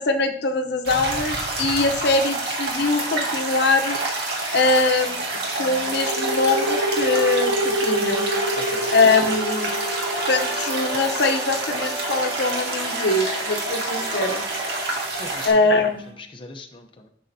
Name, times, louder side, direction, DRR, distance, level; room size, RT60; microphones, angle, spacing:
voice 1, 0.0-4.0 4.5-5.2 5.6-8.3 8.9-9.7 10.3-14.4 15.5-16.1, left 3 dB, 65° left, 6 dB, 0.8 m, -22 dB
sound 1, 0.8-15.5, right 2 dB, 65° right, 1.9 m, -28 dB
sound 2, 5.9-13.3, equal, 45° right, 1.2 m, -27 dB
sound 3, 6.1-16.1, right 1 dB, 15° right, 3.1 m, -35 dB
voice 2, 8.6-8.9 15.2-17.1, left 2 dB, 30° left, 3 dB, 0.6 m, -40 dB
10.5 x 6.3 x 2.7 m, 0.63 s
head